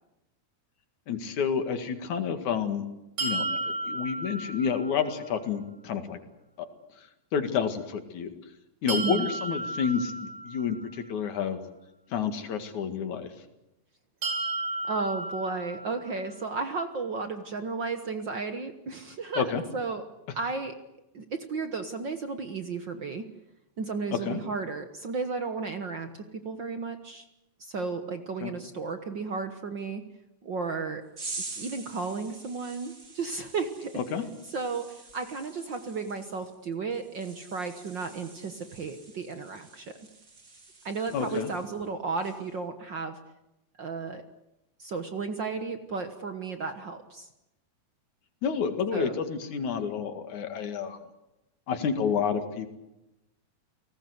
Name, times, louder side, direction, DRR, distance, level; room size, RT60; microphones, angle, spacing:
voice 1, 1.1-2.9 3.2-6.2 6.6-6.7 7.3-8.3 8.8-11.6 12.1-13.3 19.4-19.6 24.3-24.4 28.4-28.5 34.0-34.2 41.1-41.5 48.4-51.0 51.7-52.7, left 6 dB, 75° left, 8 dB, 3.4 m, -29 dB
sound 1, 3.2-5.1 8.9-10.9 14.2-16.2, right 2 dB, 85° right, 6.2 m, -33 dB
voice 2, 8.9-9.3 14.8-20.0 20.3-20.7 21.1-23.2 23.8-27.2 27.6-30.0 30.4-31.0 31.6-33.9 34.5-39.8 40.8-43.2 43.8-44.2 44.8-47.3 48.9-49.2, right 4 dB, 50° right, 8 dB, 1.6 m, -34 dB
sound 2, 31.2-41.9 42.2-42.5, right 3 dB, 30° right, 3.5 m, -46 dB
30.0 x 19.0 x 8.1 m, 0.94 s
omnidirectional pair, 3.4 m